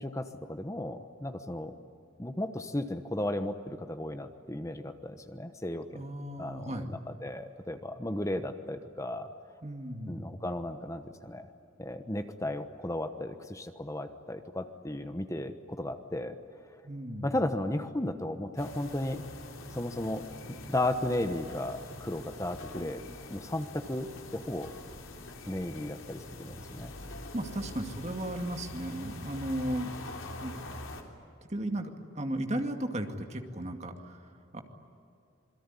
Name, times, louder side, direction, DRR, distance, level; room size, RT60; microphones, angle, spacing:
voice 1, 0.0-1.8 2.2-6.1 6.4-9.3 10.1-11.5 11.8-16.4 17.2-19.3 19.7-20.2 20.7-23.0 23.3-24.7 25.5-26.9, left 1 dB, 15° left, 8 dB, 1.1 m, -35 dB
voice 2, 5.9-6.9 9.6-10.3 16.8-17.4 27.3-29.9 30.4-30.5 31.5-34.6, right 1 dB, 35° right, 5 dB, 2.3 m, -35 dB
sound 1, 18.6-31.0, left 2 dB, 75° left, 3.5 m, -44 dB
27.5 x 22.0 x 9.9 m, 2.5 s
head